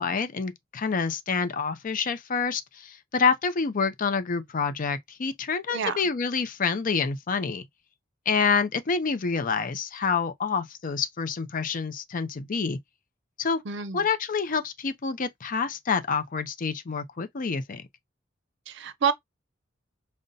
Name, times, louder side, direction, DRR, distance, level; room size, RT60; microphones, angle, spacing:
voice 1, 0.0-7.6 8.3-12.8 13.4-13.6 13.9-17.8, left 5 dB, 45° left, 0.5 m, -27 dB
voice 2, 13.7-14.1 18.7-19.1, right 7 dB, 65° right, 0.5 m, -28 dB
5.2 x 2.1 x 2.6 m
head